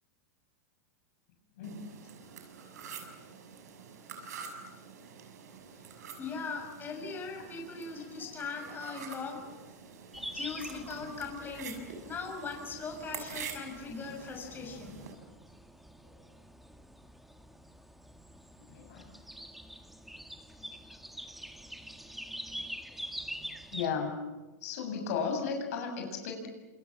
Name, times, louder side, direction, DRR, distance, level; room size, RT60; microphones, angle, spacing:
sound 1, 1.6-15.1, right 6 dB, 85° right, 6.6 m, -47 dB
voice 1, 6.2-9.6 10.3-11.8 12.0-15.1, left 4 dB, 25° left, 3 dB, 6.5 m, -40 dB
sound 2, 10.1-23.9, equal, ahead, 1.9 m, -46 dB
voice 2, 18.7-19.1 23.7-24.2 24.6-26.5, left 5 dB, 70° left, 4 dB, 7.5 m, -34 dB
28.5 x 27.0 x 7.4 m, 1.2 s
hypercardioid pair, 125°, 9 cm